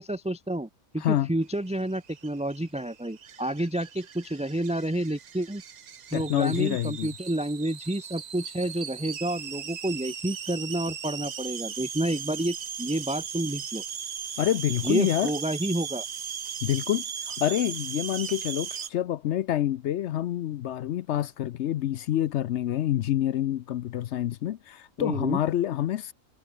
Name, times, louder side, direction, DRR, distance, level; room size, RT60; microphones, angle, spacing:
voice 1, 0.0-5.6 6.1-13.8 14.8-16.0 25.0-25.4, right 1 dB, 5° right, 0.9 m, -30 dB
voice 2, 1.0-1.3 6.1-7.1 14.4-15.3 16.6-26.1, left 12 dB, 65° left, 0.7 m, -27 dB
sound 1, 1.6-18.9, right 7 dB, 60° right, 0.4 m, -38 dB
omnidirectional pair, 1.6 m